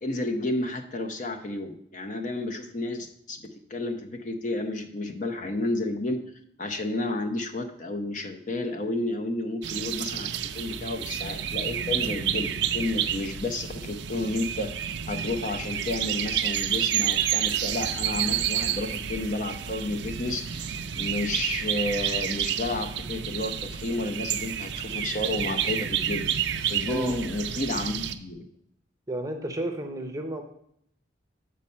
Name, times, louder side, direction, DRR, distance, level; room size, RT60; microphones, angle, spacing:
voice 1, 0.0-6.2 6.6-10.3 10.5-26.3 26.7-28.5, left 2 dB, 40° left, 6 dB, 0.7 m, -31 dB
sound 1, 9.6-28.1, right 9 dB, 65° right, 0.5 m, -30 dB
voice 2, 26.9-27.2 29.1-30.4, right 1 dB, 15° right, 5 dB, 0.7 m, -32 dB
7.1 x 5.3 x 5.4 m, 0.71 s
head